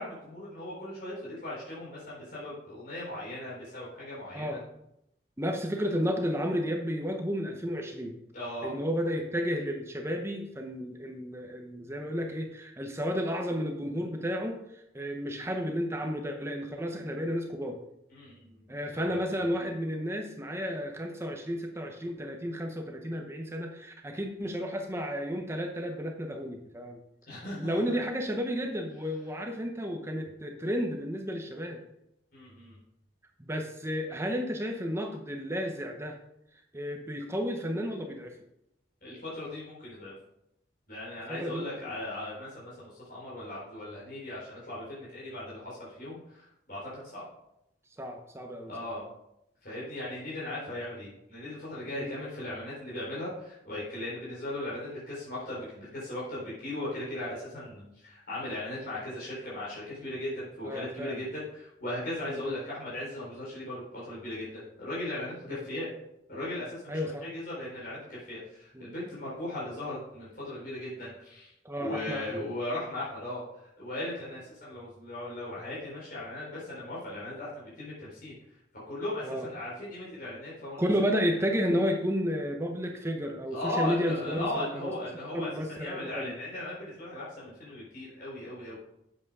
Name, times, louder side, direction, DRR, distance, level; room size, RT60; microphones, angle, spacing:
voice 1, 0.0-4.6 8.3-8.7 18.1-19.4 27.3-27.8 32.3-32.8 39.0-40.1 40.9-47.2 48.7-49.0 49.6-65.9 66.3-73.4 73.8-78.3 78.7-80.9 83.5-85.5 85.8-88.8, left 1 dB, 50° left, -8 dB, 4.1 m, -38 dB
voice 2, 5.4-8.2 8.6-17.8 18.7-27.0 27.6-31.8 33.4-36.2 36.7-38.4 41.3-41.7 48.0-48.7 52.0-52.1 60.6-61.2 62.3-62.4 65.5-65.6 66.9-67.3 68.7-68.9 71.6-72.4 79.2-79.5 80.8-86.3, equal, 15° right, 3 dB, 0.9 m, -32 dB
8.3 x 7.6 x 4.8 m, 0.81 s
head